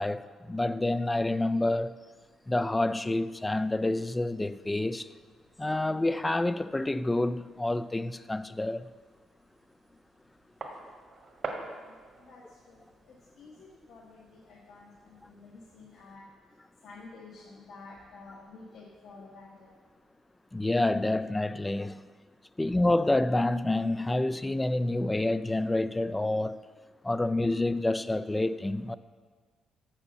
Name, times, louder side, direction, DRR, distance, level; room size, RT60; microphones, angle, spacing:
voice 1, 0.0-2.0 2.5-5.1 5.6-8.9 20.5-22.0 22.6-26.6 27.0-29.0, left 2 dB, 15° left, 0.3 m, -28 dB
sound 1, 2.1-16.2, right 3 dB, 55° right, 1.6 m, -49 dB
voice 2, 11.7-19.7, left 3 dB, 70° left, 1.2 m, -51 dB
7.2 x 6.7 x 6.7 m
cardioid pair, 90°, 0 cm